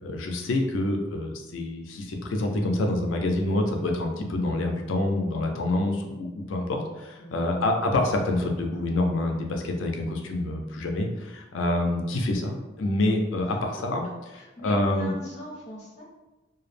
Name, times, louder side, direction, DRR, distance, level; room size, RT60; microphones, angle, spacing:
voice 1, 0.0-14.0 14.6-15.1, left 1 dB, 80° left, 2 dB, 0.4 m, -27 dB
voice 2, 7.2-7.5 13.4-13.8 14.3-16.0, equal, 40° left, -4 dB, 0.6 m, -42 dB
2.2 x 2.0 x 3.2 m, 1.1 s
head